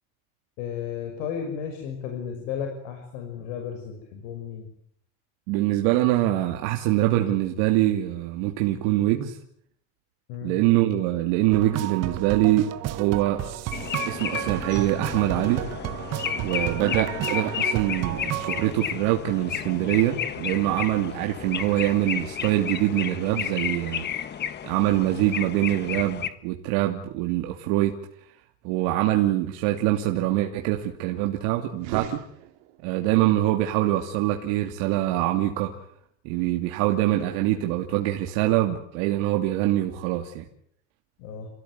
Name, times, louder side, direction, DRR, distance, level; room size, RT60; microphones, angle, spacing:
voice 1, 0.6-4.7 10.3-10.5 16.7-17.0 41.2-41.5, left 7 dB, 85° left, 4 dB, 6.1 m, -34 dB
voice 2, 5.5-9.4 10.4-13.4 14.0-15.6 16.4-24.1 24.6-27.9 28.6-32.2 32.8-35.7 36.2-40.4, right 14 dB, 70° right, 3 dB, 2.8 m, -24 dB
sound 1, 11.5-18.7, right 14 dB, 45° right, 1.5 m, -32 dB
sound 2, 13.7-26.3, left 8 dB, 30° left, 1.5 m, -32 dB
sound 3, 31.7-33.1, right 13 dB, 90° right, 3.3 m, -37 dB
29.5 x 17.0 x 9.6 m, 0.69 s
cardioid pair, 160°, 37 cm